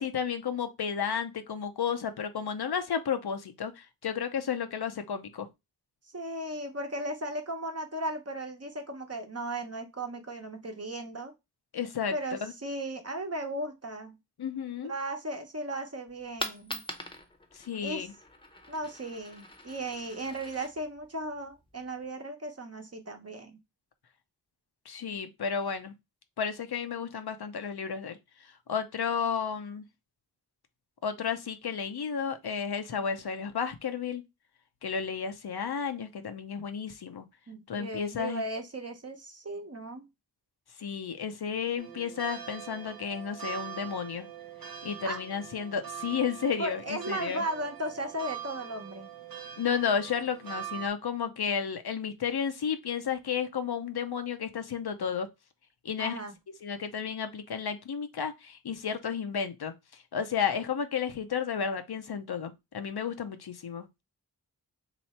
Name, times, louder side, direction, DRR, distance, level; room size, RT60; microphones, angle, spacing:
voice 1, 0.0-5.5 11.7-12.5 14.4-14.9 17.5-18.1 24.9-25.9 26.4-28.2 28.4-29.8 31.0-34.2 34.8-37.3 37.7-38.4 40.8-44.3 44.8-47.4 49.6-55.3 55.8-56.2 56.6-64.0, left 7 dB, 80° left, 0.7 m, -32 dB
voice 2, 6.1-11.3 12.1-14.2 14.9-16.8 17.8-18.1 18.7-23.6 37.5-40.1 45.0-45.2 46.6-49.1 56.0-56.3, right 1 dB, 40° right, 1.0 m, -36 dB
Coin (dropping), 16.1-22.1, left 1 dB, 15° left, 0.8 m, -44 dB
sound 1, 41.8-50.9, right 10 dB, 65° right, 0.7 m, -43 dB
3.1 x 3.0 x 4.3 m
wide cardioid pair, 65°, 38 cm